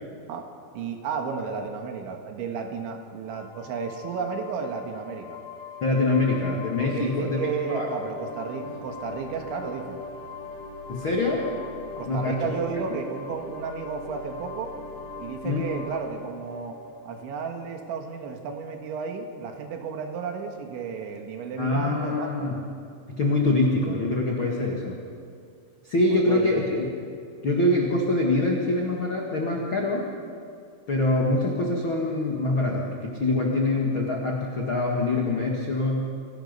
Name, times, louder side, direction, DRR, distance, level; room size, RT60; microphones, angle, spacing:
voice 1, 0.7-5.4 6.8-10.0 12.0-14.7 15.2-16.8 17.1-22.5 24.6-24.8 26.1-26.7, right 6 dB, 70° right, 4 dB, 3.7 m, -33 dB
sound 1, 3.3-17.7, left 4 dB, 30° left, 5.0 m, -41 dB
voice 2, 5.8-7.4 7.7-7.9 10.9-11.5 12.1-12.5 12.8-13.0 15.4-15.6 21.6-22.6 23.1-25.0 25.8-26.8 27.4-30.1 30.9-36.1, left 2 dB, 60° left, -2 dB, 1.3 m, -24 dB
27.0 x 18.0 x 5.5 m, 2.4 s
omnidirectional pair, 5.7 m